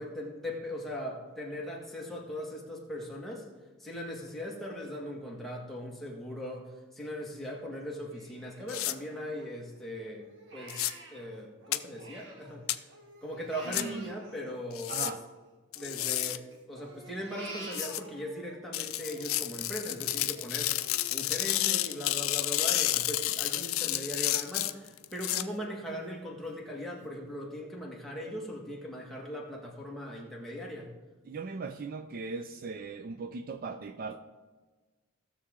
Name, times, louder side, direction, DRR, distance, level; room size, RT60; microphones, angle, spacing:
voice 1, 0.0-3.5 3.8-12.8 13.2-15.2 15.8-30.9, equal, ahead, -3 dB, 1.8 m, -39 dB
Crying sobbing, 8.1-9.8 10.2-12.6 12.9-15.3 15.7-18.6 18.9-24.4 24.8-25.0 25.4-25.9 26.4-26.5 27.0-27.1, right 2 dB, 60° right, 1.7 m, -50 dB
sound 1, 8.7-8.9 10.7-10.9 11.7-11.8 12.7-12.8 13.7-13.8 14.7-15.1 15.7-16.4 17.7-18.0 18.7-25.4, left 15 dB, 70° left, 0.4 m, -30 dB
voice 2, 13.8-14.2 14.9-15.2 31.3-34.2, right 4 dB, 45° right, 9 dB, 0.4 m, -38 dB
17.0 x 6.6 x 3.7 m, 1.3 s
head